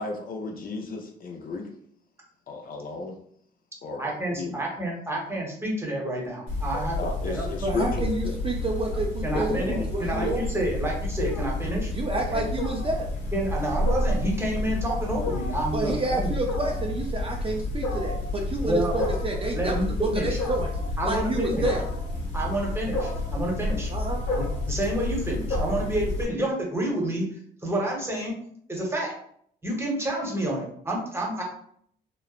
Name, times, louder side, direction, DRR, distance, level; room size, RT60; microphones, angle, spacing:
voice 1, 0.0-1.7 2.5-3.1 3.8-4.1 4.4-4.5 7.0-8.4 9.3-9.8 10.2-10.4, left 3 dB, 45° left, 2 dB, 0.4 m, -33 dB
voice 2, 4.0-7.0 7.3-7.5 9.2-11.9 12.3-12.4 13.3-16.3 18.6-19.0 19.5-20.3 21.0-21.7 22.3-23.9 24.3-27.3 27.6-28.3 28.7-29.1 29.6-31.4, right 1 dB, 10° right, -2 dB, 0.8 m, -29 dB
Wild animals, 6.5-26.2, left 2 dB, 70° left, 0.9 m, -30 dB
voice 3, 7.6-10.5 11.9-13.1 15.7-19.8 20.1-20.7 21.0-21.8 23.9-24.2, right 2 dB, 30° right, 0 dB, 0.4 m, -29 dB
2.9 x 2.0 x 2.3 m, 0.65 s
cardioid pair, 90°, 20 cm